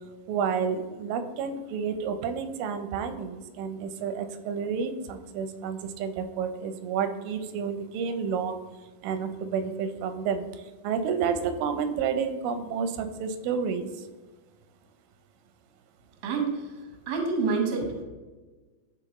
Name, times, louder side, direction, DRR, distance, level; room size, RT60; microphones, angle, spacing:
voice 1, 0.3-8.6 9.0-10.5 10.8-13.9, right 6 dB, 90° right, 9 dB, 2.4 m, -30 dB
voice 2, 16.2-16.7 17.1-18.0, right 4 dB, 60° right, 2 dB, 1.1 m, -27 dB
11.5 x 4.1 x 3.0 m, 1.3 s
omnidirectional pair, 3.9 m